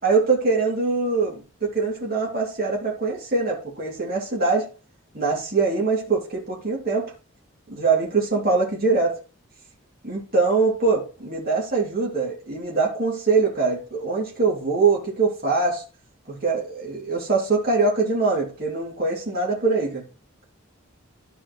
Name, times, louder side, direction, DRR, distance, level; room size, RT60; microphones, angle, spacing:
voice 1, 0.0-4.7 5.1-7.1 7.7-9.2 10.0-15.8 16.3-20.0, right 4 dB, 45° right, 2.9 m, -23 dB
13.5 x 4.9 x 3.2 m
head